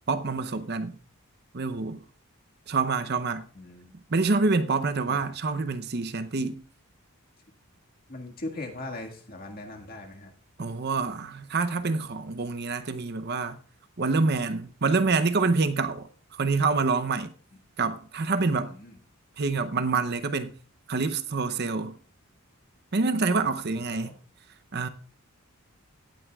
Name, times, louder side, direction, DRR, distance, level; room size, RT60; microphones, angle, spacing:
voice 1, 0.1-1.0 1.5-2.0 2.7-3.5 4.1-6.6 10.6-13.6 14.0-17.3 17.8-18.8 19.4-20.5 20.9-22.0 22.9-24.1 24.7-24.9, right 4 dB, 45° right, 0.7 m, -27 dB
voice 2, 3.5-3.9 5.1-5.2 8.1-10.3 18.5-19.0 23.4-24.2, left 2 dB, 40° left, 1.8 m, -40 dB
17.0 x 9.2 x 2.3 m
head